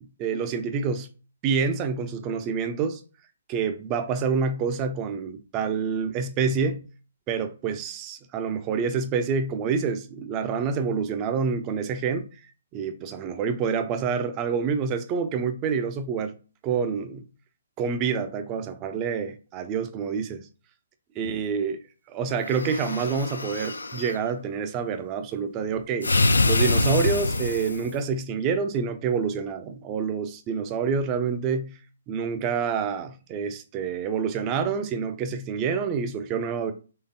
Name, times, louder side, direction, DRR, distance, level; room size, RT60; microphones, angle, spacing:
voice 1, 0.2-1.1 1.4-3.0 3.5-6.8 7.3-12.3 12.7-16.3 16.6-17.2 17.8-20.5 21.2-21.8 22.1-26.1 26.5-31.8 32.1-36.7, right 6 dB, 25° right, 0.4 m, -27 dB
sound 1, 22.4-24.2 26.0-28.0, left 2 dB, 75° left, 0.4 m, -25 dB
3.7 x 3.3 x 2.6 m
figure-of-eight pair, 130°, 0 cm